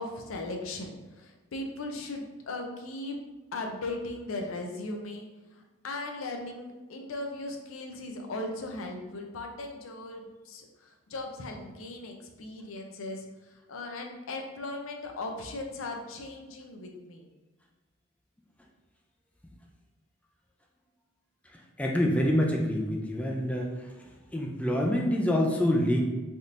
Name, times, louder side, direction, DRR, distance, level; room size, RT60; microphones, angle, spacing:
voice 1, 0.0-3.2 3.5-5.3 5.8-10.7 11.1-13.3 13.7-17.3, left 2 dB, 85° left, 3 dB, 0.5 m, -38 dB
voice 2, 21.8-23.7 24.3-26.0, left 1 dB, 5° left, 0 dB, 0.3 m, -26 dB
3.4 x 2.8 x 2.5 m, 1.2 s
head